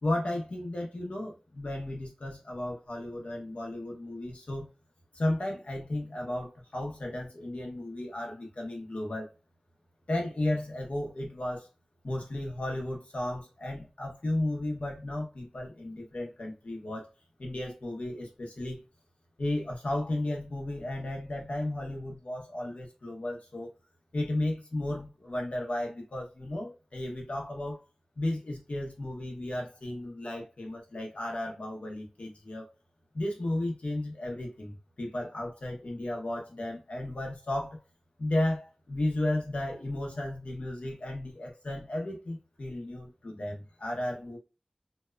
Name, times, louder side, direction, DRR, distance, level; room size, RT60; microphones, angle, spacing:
voice 1, 0.0-4.7 5.1-9.3 10.1-11.7 12.0-17.1 17.4-18.8 19.4-23.7 24.1-27.8 28.2-32.7 33.1-37.8 38.2-44.4, left 1 dB, 75° left, 0.7 m, -34 dB
2.7 x 2.1 x 2.3 m
wide cardioid pair, 50°, 2 cm